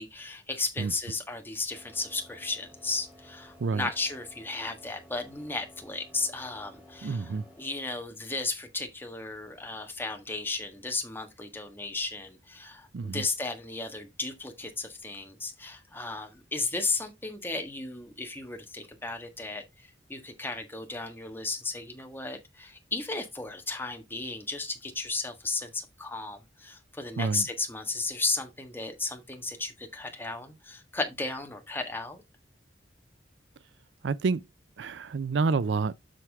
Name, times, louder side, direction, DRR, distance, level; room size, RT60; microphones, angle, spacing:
voice 1, 0.0-32.2, left 3 dB, 10° left, 1.5 m, -34 dB
sound 1, 1.7-8.0, equal, 5° right, 3.0 m, -54 dB
voice 2, 7.0-7.5 12.9-13.3 27.2-27.5 34.0-34.4 34.8-36.0, right 4 dB, 75° right, 0.4 m, -28 dB
7.7 x 6.0 x 3.5 m
head